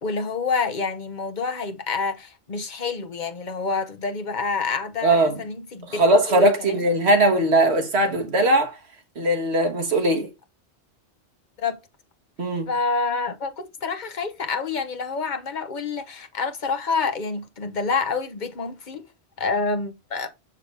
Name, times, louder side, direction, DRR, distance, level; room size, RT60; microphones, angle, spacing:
voice 1, 0.0-6.8 11.6-11.8 12.7-19.0 19.4-20.3, left 4 dB, 45° left, 1.0 m, -28 dB
voice 2, 5.0-5.4 5.9-8.7 9.1-10.3 12.4-12.7, right 1 dB, 70° right, 1.7 m, -20 dB
6.6 x 5.9 x 3.4 m
omnidirectional pair, 1.1 m